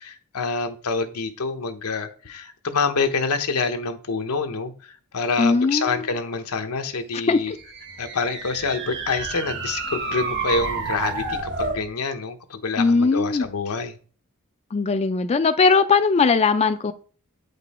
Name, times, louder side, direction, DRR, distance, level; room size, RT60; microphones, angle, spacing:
voice 1, 0.0-7.5 8.0-13.9, left 4 dB, 85° left, 0.9 m, -27 dB
voice 2, 5.4-6.1 7.3-7.6 12.8-13.5 14.7-16.9, left 4 dB, 30° left, 0.4 m, -19 dB
sound 1, 7.5-11.9, right 4 dB, 55° right, 1.4 m, -30 dB
8.3 x 5.3 x 4.1 m
head